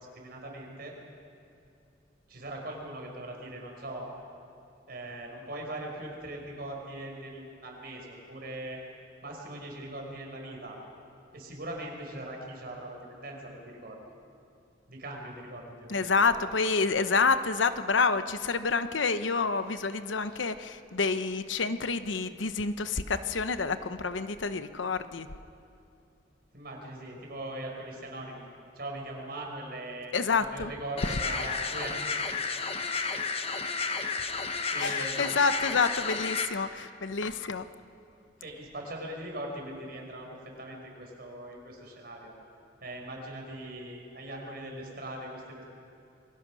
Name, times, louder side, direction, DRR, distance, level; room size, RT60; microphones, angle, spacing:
voice 1, 0.1-1.0 2.3-4.1 4.9-8.8 9.2-10.8 11.3-14.0 14.9-16.3 20.2-20.4 26.5-28.5 28.8-32.2 33.9-35.3 38.4-42.4 42.8-45.7, right 1 dB, 55° right, 0 dB, 5.3 m, -41 dB
voice 2, 15.9-25.3 30.1-30.7 31.0-31.2 34.8-37.7, left 4 dB, 90° left, 11 dB, 0.9 m, -28 dB
sound 1, 31.0-36.5, left 4 dB, 35° left, 1.2 m, -32 dB
27.5 x 22.5 x 6.3 m, 2.6 s
head